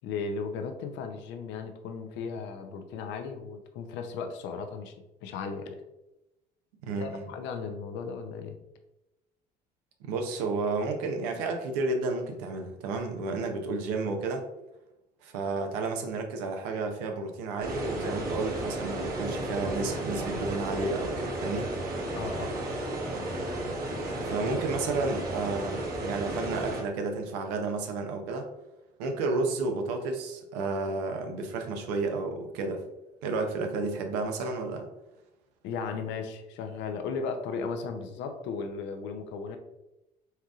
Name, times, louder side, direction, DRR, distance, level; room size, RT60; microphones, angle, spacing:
voice 1, 0.0-4.9 5.2-5.8 7.0-8.6 22.1-22.6 35.6-39.6, left 5 dB, 65° left, 6 dB, 0.6 m, -36 dB
voice 2, 6.8-7.3 10.0-14.4 15.2-21.7 24.2-28.5 29.0-32.8 33.2-34.9, right 3 dB, 75° right, 4 dB, 0.7 m, -31 dB
sound 1, 17.6-26.8, right 1 dB, 50° right, 1.1 m, -33 dB
4.3 x 3.5 x 2.4 m, 0.95 s
hypercardioid pair, 60°, 21 cm